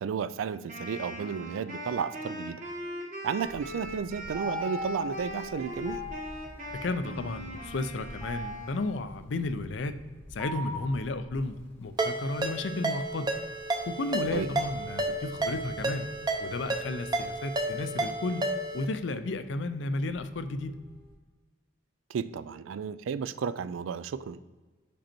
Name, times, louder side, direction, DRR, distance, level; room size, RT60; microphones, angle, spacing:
voice 1, 0.0-2.6 3.2-6.0 14.3-14.5 22.1-24.4, right 6 dB, 90° right, 15 dB, 0.3 m, -33 dB
Wind instrument woodwind instrument, 0.7-9.1, equal, 40° right, 1.2 m, -41 dB
sound 1, 3.4-21.1, left 1 dB, 10° left, 0.9 m, -43 dB
voice 2, 6.7-10.0 10.3-13.3 13.9-16.1 16.4-18.4 18.7-20.7, left 2 dB, 65° left, 10 dB, 0.5 m, -33 dB
Ringtone, 12.0-18.9, right 2 dB, 20° right, 0.6 m, -32 dB
5.4 x 5.2 x 4.4 m, 1.3 s
head